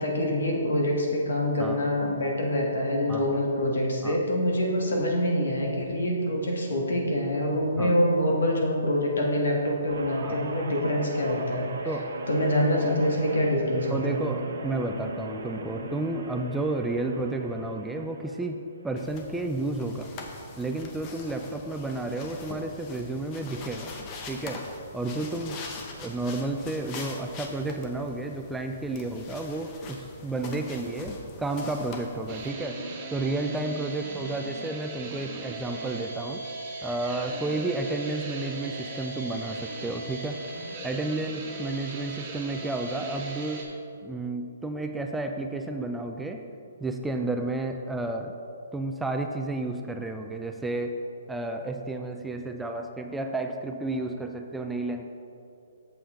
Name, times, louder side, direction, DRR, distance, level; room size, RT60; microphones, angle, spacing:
voice 1, 0.0-11.7 12.3-14.2 15.8-15.9, left 1 dB, 80° left, -1 dB, 1.8 m, -25 dB
Guitar, 9.9-18.5 18.9-19.2, right 2 dB, 70° right, 0.9 m, -39 dB
voice 2, 13.9-20.1 20.6-23.9 24.3-24.7 24.9-25.6 25.9-32.8 33.1-36.4 36.8-40.4 40.8-43.6 44.0-46.4 46.8-48.3 48.7-51.0 51.3-55.0, right 2 dB, 5° right, 4 dB, 0.3 m, -31 dB
sound 1, 19.0-32.5, left 3 dB, 30° left, 0.8 m, -43 dB
sound 2, 32.3-43.6, right 3 dB, 30° right, 1.2 m, -38 dB
7.8 x 6.7 x 3.8 m, 2.5 s
hypercardioid pair, 150°, 0 cm